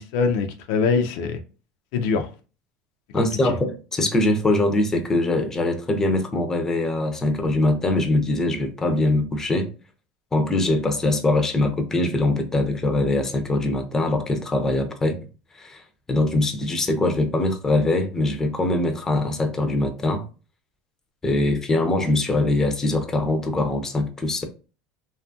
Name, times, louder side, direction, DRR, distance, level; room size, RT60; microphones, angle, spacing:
voice 1, 0.0-1.4 1.9-2.3 3.2-3.6, left 5 dB, 70° left, 0.4 m, -23 dB
voice 2, 3.1-9.7 10.3-15.2 15.6-15.8 16.1-20.2 21.2-24.4, left 2 dB, 15° left, 0.5 m, -22 dB
2.7 x 2.4 x 2.5 m
supercardioid pair, 120°, 3 cm